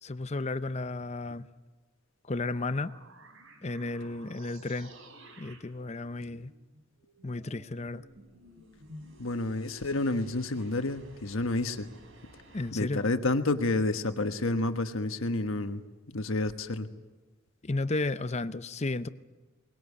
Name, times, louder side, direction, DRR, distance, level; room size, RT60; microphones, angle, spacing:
voice 1, 0.0-1.5 2.3-2.9 3.6-4.9 5.4-6.5 7.2-8.1 12.5-13.1 17.6-19.1, left 2 dB, 30° left, 0.6 m, -33 dB
sound 1, 2.3-12.7, right 1 dB, 70° right, 3.4 m, -54 dB
voice 2, 9.2-11.9 12.7-16.9, left 2 dB, 75° left, 1.3 m, -30 dB
22.5 x 20.5 x 8.4 m
head